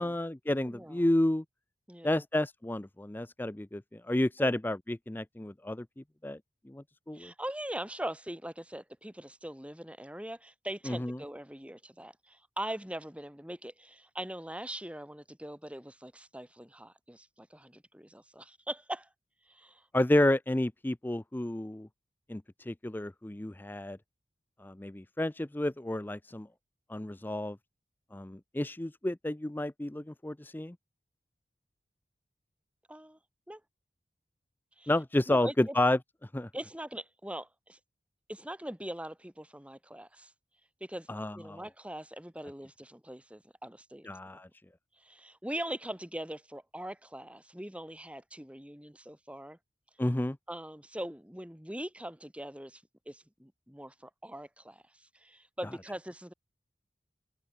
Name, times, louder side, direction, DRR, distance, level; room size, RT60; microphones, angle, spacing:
voice 1, 0.0-1.4 2.0-6.4 6.7-7.3 10.9-11.2 19.9-21.9 22.3-24.0 24.6-26.5 26.9-27.6 28.1-30.8 34.9-36.0 36.3-36.5 41.1-41.6 44.1-44.5 50.0-50.4, left 1 dB, 10° left, 0.5 m, -30 dB
voice 2, 0.6-1.1 1.9-2.3 4.4-4.5 7.1-19.1 19.5-19.9 32.9-33.2 33.5-33.6 34.8-34.9 35.3-35.8 36.5-37.8 38.3-40.3 40.8-41.1 41.3-44.1 45.0-49.6 50.5-56.3, right 1 dB, 5° right, 3.6 m, -42 dB
head